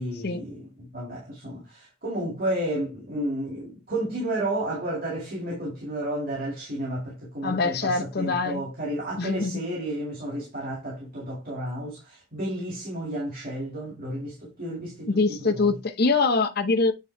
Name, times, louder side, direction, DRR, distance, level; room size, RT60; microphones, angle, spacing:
voice 1, 0.0-15.7, right 1 dB, 45° right, 2.3 m, -32 dB
voice 2, 7.4-8.6 9.2-9.5 15.1-16.9, left 3 dB, 50° left, 0.7 m, -24 dB
8.1 x 3.7 x 3.3 m
head